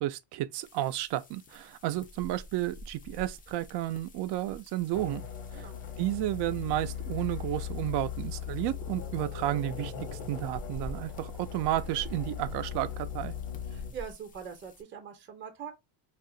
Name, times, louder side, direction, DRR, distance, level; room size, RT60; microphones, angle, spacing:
voice 1, 0.0-5.2 5.5-5.7 6.0-13.3, right 14 dB, 65° right, 0.5 m, -32 dB
sound 1, 0.6-14.8, left 1 dB, 20° left, 0.3 m, -48 dB
sound 2, 4.9-13.9, left 8 dB, 90° left, 1.0 m, -39 dB
voice 2, 5.5-5.8 13.7-15.7, right 7 dB, 25° right, 0.6 m, -43 dB
2.7 x 2.4 x 3.7 m
cardioid pair, 150°, 44 cm